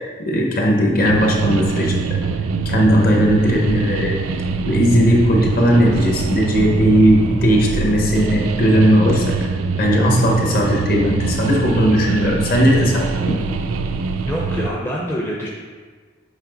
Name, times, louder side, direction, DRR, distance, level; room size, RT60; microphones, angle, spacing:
voice 1, 0.0-2.2 2.6-4.2 4.6-9.4 9.8-13.4, equal, 45° left, 0 dB, 1.0 m, -17 dB
sound 1, 1.0-14.7, right 4 dB, 85° right, 0.4 m, -23 dB
voice 2, 14.2-15.5, equal, 10° left, -3 dB, 0.5 m, -25 dB
7.2 x 3.8 x 3.9 m, 1.5 s
head